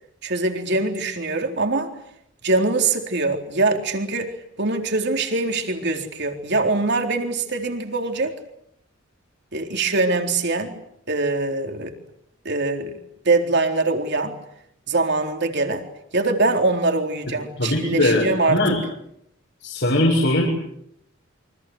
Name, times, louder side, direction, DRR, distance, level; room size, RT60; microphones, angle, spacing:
voice 1, 0.2-1.9 2.4-4.3 4.6-8.4 9.5-10.8 11.1-11.9 12.4-12.9 13.2-14.3 14.9-15.9 16.1-18.6, right 3 dB, 55° right, 4 dB, 4.0 m, -23 dB
voice 2, 17.6-18.8 19.6-20.4, left 1 dB, 60° left, -1 dB, 6.9 m, -20 dB
29.0 x 25.0 x 8.0 m, 0.76 s
head